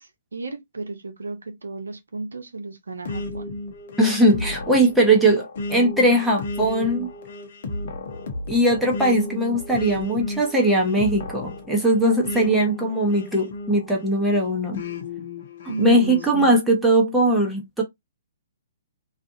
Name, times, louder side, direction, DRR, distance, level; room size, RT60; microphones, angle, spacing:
voice 1, 0.0-3.5 15.7-16.6, right 3 dB, 80° right, 0.7 m, -33 dB
sound 1, 3.0-14.1 14.7-16.3, left 2 dB, 55° left, 0.8 m, -34 dB
voice 2, 4.0-7.1 8.5-14.8 15.8-17.8, right 1 dB, ahead, 0.9 m, -20 dB
2.5 x 2.4 x 2.6 m
figure-of-eight pair, 125°, 0 cm